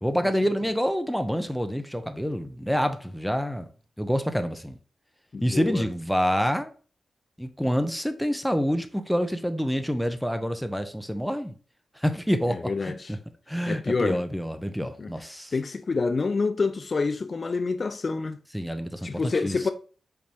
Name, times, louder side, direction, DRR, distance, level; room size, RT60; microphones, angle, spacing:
voice 1, 0.0-3.7 4.0-4.8 5.4-6.7 7.4-11.6 12.0-13.2 13.5-15.5 18.5-19.6, equal, ahead, 0.6 m, -27 dB
voice 2, 5.3-5.8 12.5-13.1 13.7-14.2 15.0-15.1 15.5-18.4 19.0-19.7, left 4 dB, 50° left, 0.3 m, -27 dB
5.0 x 3.4 x 2.8 m
cardioid pair, 65°, 0 cm